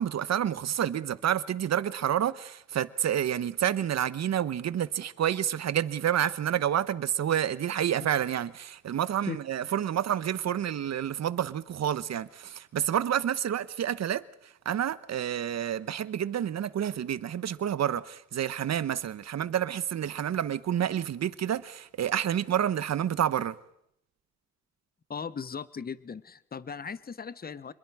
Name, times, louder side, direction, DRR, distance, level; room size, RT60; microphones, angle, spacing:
voice 1, 0.0-14.2 14.6-23.5, right 10 dB, 60° right, 1.0 m, -29 dB
voice 2, 25.1-27.7, left 6 dB, 30° left, 1.0 m, -38 dB
27.5 x 21.5 x 4.9 m
cardioid pair, 75°, 31 cm